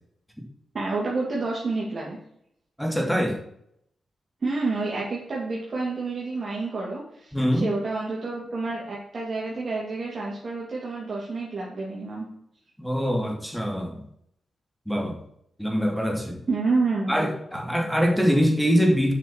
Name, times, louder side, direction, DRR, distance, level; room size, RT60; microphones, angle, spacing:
voice 1, 0.7-2.2 4.4-12.2 16.5-17.3, right 3 dB, 50° right, -5 dB, 3.1 m, -29 dB
voice 2, 2.8-3.4 7.3-7.7 12.8-14.0 14.9-15.2 15.6-16.4 17.1-19.1, equal, ahead, 2 dB, 2.9 m, -23 dB
8.6 x 6.0 x 7.4 m, 0.71 s
cardioid pair, 85°, 0 cm